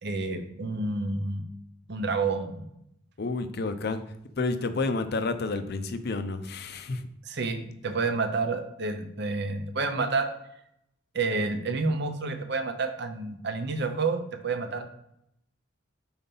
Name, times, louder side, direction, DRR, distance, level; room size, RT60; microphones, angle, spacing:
voice 1, 0.0-1.4 1.9-2.6 7.3-10.3 11.1-14.8, right 3 dB, 55° right, 7 dB, 0.7 m, -29 dB
voice 2, 3.2-4.0 4.4-7.1, left 3 dB, 50° left, 10 dB, 0.5 m, -30 dB
4.4 x 3.9 x 5.4 m, 0.79 s
head